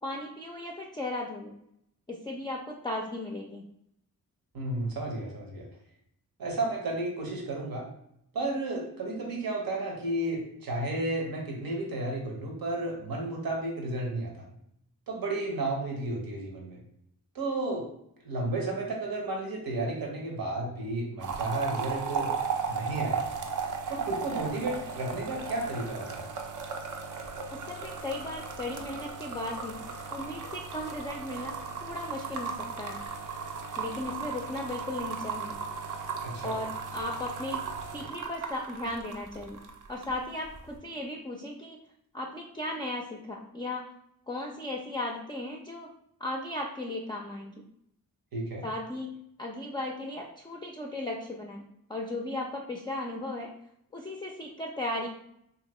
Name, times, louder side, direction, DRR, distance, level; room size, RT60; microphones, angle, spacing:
voice 1, 0.0-1.5 2.1-3.6 27.5-29.8 30.1-31.6 31.8-33.0 33.8-35.6 36.4-37.6 37.9-39.6 39.9-41.8 42.1-43.8 44.3-45.9 46.2-47.6 48.6-51.6 51.9-53.5 53.9-55.1, left 1 dB, 15° left, -1 dB, 0.3 m, -36 dB
voice 2, 4.5-5.7 6.4-7.9 8.3-14.5 15.1-16.8 17.3-17.9 18.2-22.3 22.7-23.2 23.9-26.2 36.2-36.6 48.3-48.6, right 2 dB, 80° right, 0 dB, 0.9 m, -32 dB
sound 1, 21.2-40.2 40.4-40.8, right 5 dB, 65° right, 0.5 m, -36 dB
2.9 x 2.5 x 2.9 m, 0.74 s
cardioid pair, 60°, 35 cm